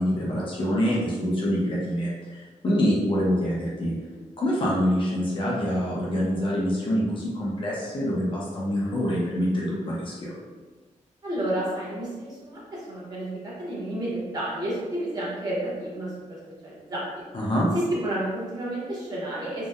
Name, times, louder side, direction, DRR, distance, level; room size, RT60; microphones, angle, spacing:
voice 1, 0.0-3.9 4.4-10.3 17.3-17.7, equal, 40° left, -5 dB, 0.5 m, -25 dB
voice 2, 11.2-17.2 17.7-19.7, right 1 dB, 30° right, -7 dB, 0.8 m, -31 dB
2.7 x 2.1 x 2.3 m, 1.3 s
wide cardioid pair, 170°, 13 cm